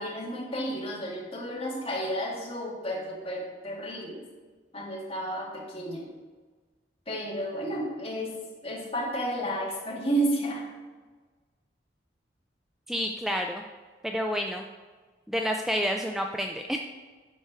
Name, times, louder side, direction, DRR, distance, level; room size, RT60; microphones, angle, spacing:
voice 1, 0.0-4.2 4.7-6.1 7.1-8.4 8.6-10.7, right 1 dB, 35° left, -3 dB, 1.9 m, -32 dB
voice 2, 12.9-13.6 14.0-14.7 15.3-16.8, equal, ahead, 3 dB, 0.3 m, -29 dB
11.5 x 4.4 x 4.6 m, 1.4 s
head